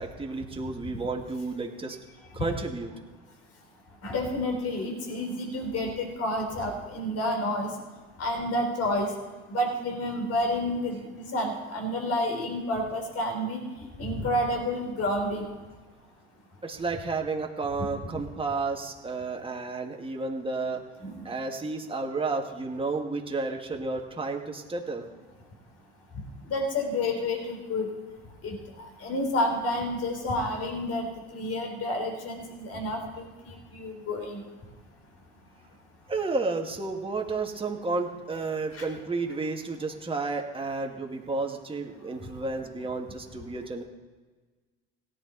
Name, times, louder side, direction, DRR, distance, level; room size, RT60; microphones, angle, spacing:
voice 1, 0.0-2.0 2.3-3.0 16.6-20.8 21.2-25.0 36.1-43.8, right 3 dB, 15° right, 1 dB, 2.0 m, -32 dB
voice 2, 4.0-7.7 8.2-9.1 9.5-13.6 14.0-15.5 21.0-21.2 26.5-27.9 28.4-28.6 29.0-31.1 31.3-34.4 38.7-38.8, left 1 dB, 50° left, 2 dB, 4.1 m, -29 dB
17.0 x 9.9 x 4.1 m, 1.3 s
hypercardioid pair, 70°, 31 cm